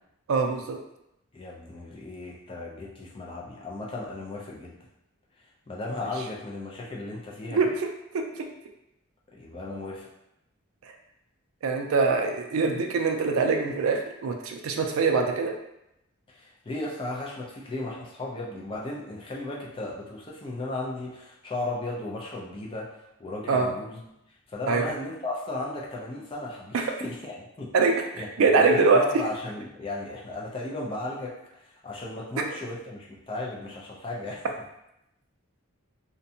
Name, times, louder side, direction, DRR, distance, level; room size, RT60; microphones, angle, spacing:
voice 1, 0.3-0.8 7.5-7.9 8.1-8.2 11.6-15.5 23.5-23.7 24.7-24.9 26.7-26.8 27.7-28.0 28.4-29.0, right 4 dB, 70° right, 3 dB, 0.3 m, -23 dB
voice 2, 1.3-4.8 5.7-7.7 9.3-10.1 16.3-24.0 24.5-27.7 28.1-34.5, left 2 dB, 25° left, -3 dB, 0.3 m, -35 dB
2.5 x 2.2 x 2.7 m, 0.84 s
head